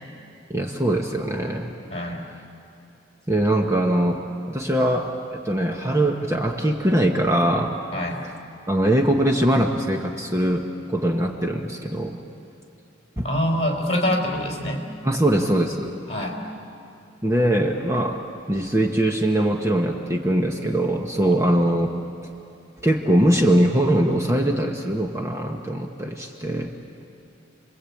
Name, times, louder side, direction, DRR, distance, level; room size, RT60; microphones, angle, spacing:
voice 1, 0.5-1.7 3.3-4.2 4.5-7.7 8.7-12.2 13.2-13.3 15.0-15.9 17.2-18.2 18.5-21.9 22.8-26.7, right 1 dB, 15° right, 2 dB, 1.1 m, -22 dB
voice 2, 1.9-2.2 7.9-8.2 13.2-14.8 16.1-16.4, left 1 dB, 35° left, 1 dB, 4.0 m, -25 dB
29.5 x 21.5 x 8.5 m, 2.7 s
head